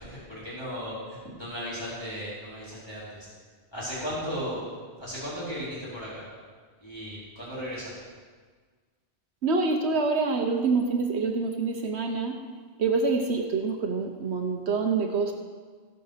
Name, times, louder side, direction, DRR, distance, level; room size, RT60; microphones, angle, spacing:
voice 1, 0.0-3.3 3.7-4.6 5.0-6.2 6.8-7.9, equal, 25° left, -11 dB, 4.7 m, -36 dB
voice 2, 9.4-12.4 12.8-15.3, right 4 dB, 75° right, 3 dB, 1.2 m, -26 dB
17.0 x 6.0 x 6.7 m, 1.5 s
omnidirectional pair, 1.1 m